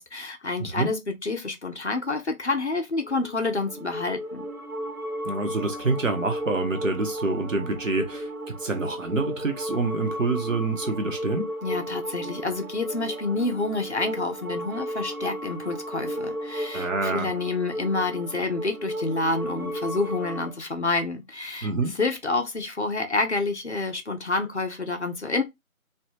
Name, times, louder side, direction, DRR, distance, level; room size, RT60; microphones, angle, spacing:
voice 1, 0.0-4.5 11.6-21.7 21.9-25.4, left 3 dB, 50° left, 0.6 m, -28 dB
voice 2, 0.6-0.9 5.2-11.5 16.7-17.3 21.6-22.0, right 3 dB, 60° right, 1.0 m, -27 dB
sound 1, 3.0-20.6, equal, 85° right, 1.6 m, -34 dB
3.2 x 2.3 x 2.8 m
figure-of-eight pair, 170°, 43 cm